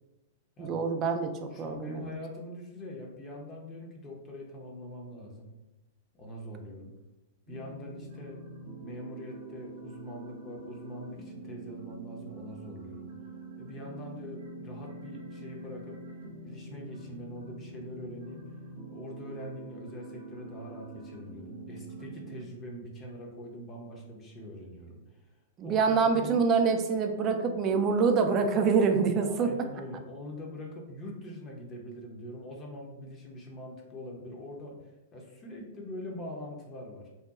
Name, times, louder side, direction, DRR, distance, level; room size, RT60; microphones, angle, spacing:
voice 1, 0.6-2.1 25.6-29.5, right 5 dB, 30° right, 5 dB, 0.3 m, -26 dB
voice 2, 1.5-5.5 6.1-6.9 7.5-8.4 8.8-13.1 13.6-16.0 16.4-18.5 18.9-25.3 25.6-26.5 29.2-37.1, left 1 dB, 25° left, -1 dB, 0.6 m, -43 dB
sound 1, 7.5-22.4, right 2 dB, 65° right, 0.7 m, -45 dB
2.7 x 2.2 x 2.3 m, 0.99 s
figure-of-eight pair, 105°, 0 cm